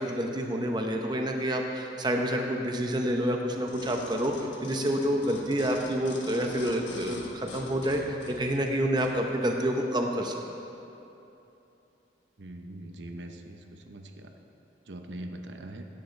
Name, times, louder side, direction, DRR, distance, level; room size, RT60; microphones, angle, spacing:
voice 1, 0.0-10.4, equal, 25° right, 2 dB, 0.8 m, -28 dB
sound 1, 3.7-9.2 9.7-9.8, left 2 dB, 85° left, 1.2 m, -44 dB
voice 2, 12.4-13.6 13.9-14.3 14.9-15.8, right 1 dB, 85° right, 5 dB, 0.8 m, -41 dB
16.5 x 10.5 x 3.3 m, 2.9 s
head